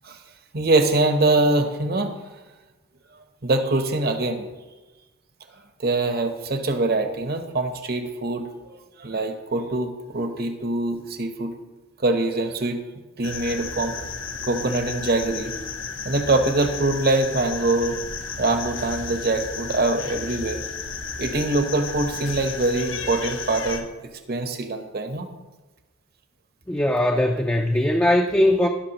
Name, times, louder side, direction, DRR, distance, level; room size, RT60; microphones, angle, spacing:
voice 1, 0.5-2.2 3.4-4.5 5.8-11.5 12.0-12.8 13.2-14.0 14.4-15.5 16.0-18.0 18.4-20.6 21.2-23.9 24.3-25.3, right 2 dB, 50° right, 7 dB, 0.9 m, -23 dB
sound 1, 13.2-23.8, left 5 dB, 70° left, 0.9 m, -33 dB
voice 2, 26.7-28.7, left 1 dB, 10° left, 2 dB, 0.4 m, -20 dB
17.5 x 6.0 x 3.0 m, 1.2 s
head